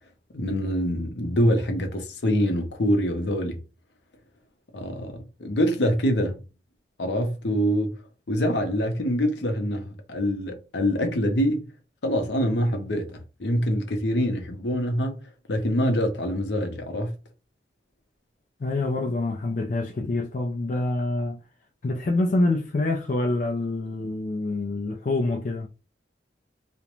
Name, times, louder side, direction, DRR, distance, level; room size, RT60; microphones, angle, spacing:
voice 1, 0.3-3.6 4.7-6.4 7.0-8.0 8.3-11.7 12.0-17.2, equal, 80° left, 0.7 m, -25 dB
voice 2, 18.6-21.4 21.8-25.7, left 2 dB, 45° left, 0.4 m, -26 dB
2.4 x 2.1 x 2.9 m
head